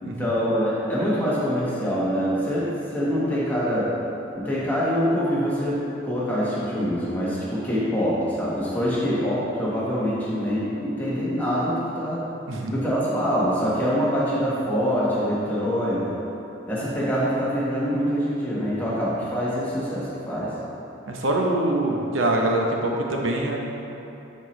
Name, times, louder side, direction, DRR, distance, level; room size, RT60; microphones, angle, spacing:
voice 1, 0.0-3.9 4.3-12.2 12.7-16.1 16.7-20.5, equal, 10° left, -8 dB, 1.3 m, -25 dB
voice 2, 21.1-23.6, right 1 dB, 75° right, 0 dB, 0.8 m, -24 dB
11.0 x 4.4 x 3.2 m, 3.0 s
head